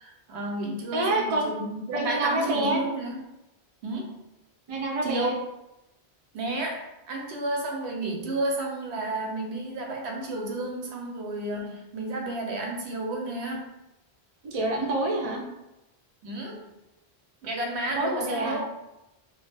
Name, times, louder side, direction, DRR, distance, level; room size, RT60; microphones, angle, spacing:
voice 1, 0.0-3.2 3.8-4.2 5.0-5.3 6.3-13.7 16.2-16.7 17.4-18.7, right 2 dB, 85° right, 0 dB, 0.9 m, -32 dB
voice 2, 0.9-1.5 1.9-2.8 4.7-5.3 14.4-15.4 18.0-18.6, right 1 dB, 50° right, 0 dB, 0.4 m, -27 dB
2.4 x 2.2 x 3.2 m, 0.94 s
omnidirectional pair, 1.1 m